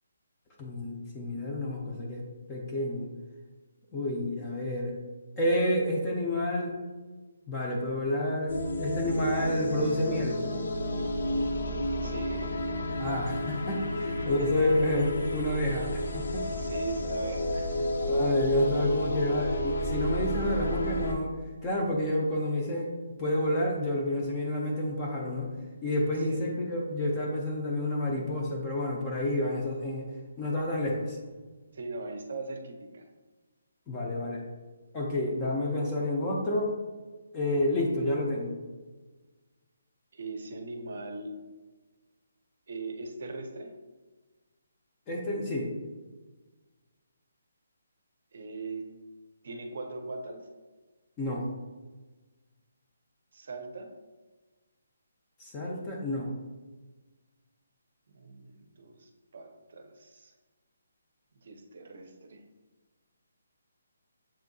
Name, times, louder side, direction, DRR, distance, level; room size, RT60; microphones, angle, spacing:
voice 1, 0.6-2.2 2.5-3.1 3.9-4.9 5.4-6.7 7.5-10.4 13.0-16.4 18.0-21.3 21.6-22.9 23.2-25.5 25.8-30.1 30.4-31.2 33.9-34.4 34.9-36.7 37.3-38.5 45.1-45.7 51.2-51.4 55.4-56.3, left 1 dB, 15° left, -2 dB, 0.4 m, -29 dB
sound 1, 8.5-21.1, left 1 dB, 65° left, 0.5 m, -31 dB
voice 2, 12.0-12.5 14.0-14.3 16.5-18.1 26.3-26.6 31.7-33.1 40.1-41.4 42.7-43.7 48.3-48.9 49.4-50.5 53.3-53.9 58.1-60.3 61.4-62.4, right 3 dB, 45° right, 5 dB, 0.6 m, -40 dB
7.2 x 2.7 x 2.6 m, 1.3 s
hypercardioid pair, 175°, 0 cm